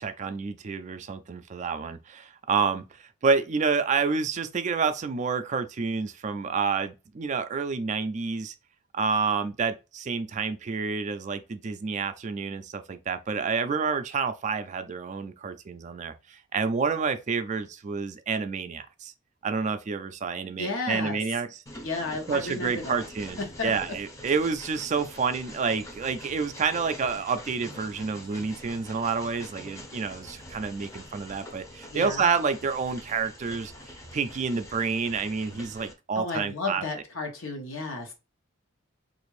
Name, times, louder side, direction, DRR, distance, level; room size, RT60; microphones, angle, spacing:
voice 1, 0.0-2.8 3.2-8.5 8.9-19.1 19.4-21.5 22.3-33.7 34.1-36.8, right 5 dB, 35° right, 0.3 m, -29 dB
voice 2, 20.6-21.2 21.8-23.0 23.4-24.0 31.9-32.2 36.1-38.1, left 3 dB, 75° left, 1.0 m, -33 dB
Train, 21.7-35.9, left 1 dB, 15° left, 0.6 m, -45 dB
3.3 x 2.5 x 3.2 m
head